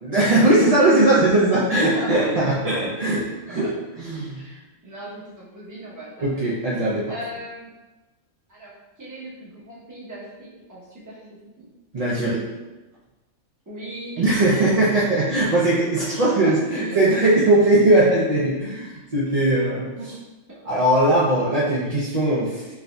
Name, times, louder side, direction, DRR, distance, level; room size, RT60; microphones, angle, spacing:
voice 1, 0.0-4.4 6.2-7.1 11.9-12.4 14.2-19.9 20.7-22.6, right 1 dB, 55° right, -8 dB, 0.4 m, -19 dB
voice 2, 1.8-2.3 2.9-3.7 4.3-6.5 7.1-7.7 8.5-11.7 13.7-14.7 16.4-17.0 19.2-19.3 20.0-20.1 20.5-20.6, right 1 dB, 20° right, -7 dB, 0.7 m, -38 dB
4.5 x 2.6 x 2.2 m, 1.1 s
omnidirectional pair, 1.4 m